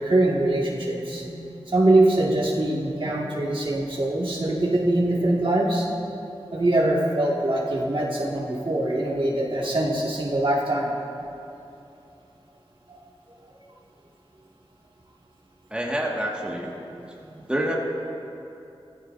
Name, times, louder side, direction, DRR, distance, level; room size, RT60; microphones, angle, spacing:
voice 1, 0.0-1.4 1.7-5.9 6.5-10.9 12.9-13.0 17.2-17.4, right 1 dB, 55° right, -4 dB, 1.9 m, -23 dB
voice 2, 15.7-16.7 17.5-17.7, right 1 dB, 10° right, -2 dB, 1.7 m, -27 dB
15.5 x 14.5 x 2.6 m, 2.9 s
wide cardioid pair, 45°, 10 cm